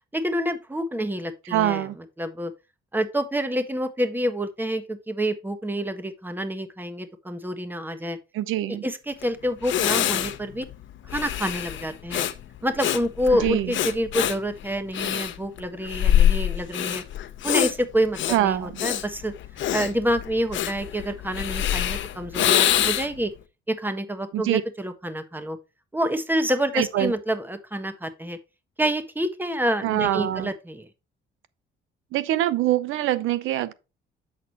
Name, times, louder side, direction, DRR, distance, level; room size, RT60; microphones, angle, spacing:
voice 1, 0.1-1.9 2.2-2.5 2.9-8.2 8.8-10.7 11.1-12.2 12.6-17.0 17.4-19.3 19.7-23.3 23.7-25.6 25.9-28.4 28.8-30.9, equal, 10° right, 1.4 m, -27 dB
voice 2, 1.5-2.0 8.3-8.8 13.4-13.8 18.3-18.7 24.3-24.6 26.7-27.1 29.8-30.5 32.1-33.7, right 13 dB, 90° right, 0.7 m, -24 dB
Breathing, 9.2-9.3 9.6-23.3, left 11 dB, 75° left, 0.9 m, -25 dB
8.0 x 6.5 x 2.9 m
cardioid pair, 90°, 20 cm